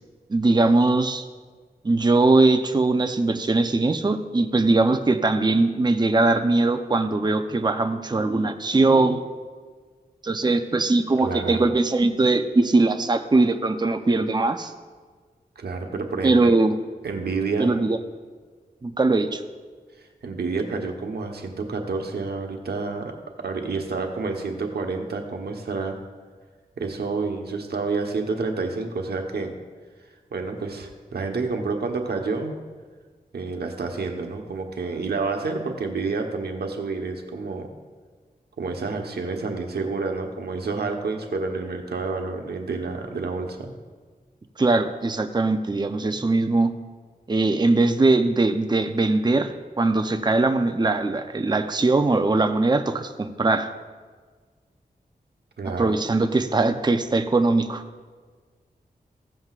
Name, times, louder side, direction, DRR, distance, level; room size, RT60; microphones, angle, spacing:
voice 1, 0.3-1.2 1.8-9.2 10.2-14.7 16.2-16.7 17.6-18.0 18.8-19.4 44.6-46.7 47.3-49.5 49.8-53.7 55.8-57.8, right 2 dB, 25° right, 7 dB, 0.6 m, -21 dB
voice 2, 11.2-11.7 15.6-16.6 17.0-17.8 20.0-26.0 26.8-29.5 30.3-32.5 33.3-37.7 38.6-43.7 46.1-46.2 55.6-55.9, right 4 dB, 85° right, 3 dB, 1.1 m, -29 dB
16.0 x 7.7 x 2.4 m, 1.5 s
cardioid pair, 60°, 16 cm